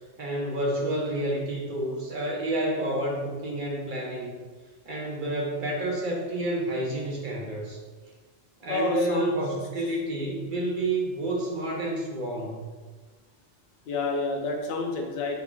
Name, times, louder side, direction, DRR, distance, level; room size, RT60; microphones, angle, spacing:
voice 1, 0.2-4.3 4.8-7.8 8.6-12.7, right 1 dB, 50° right, -2 dB, 0.8 m, -29 dB
voice 2, 8.7-9.4 13.9-15.4, left 3 dB, 65° left, 1 dB, 0.8 m, -28 dB
5.5 x 2.9 x 2.3 m, 1.4 s
omnidirectional pair, 1.2 m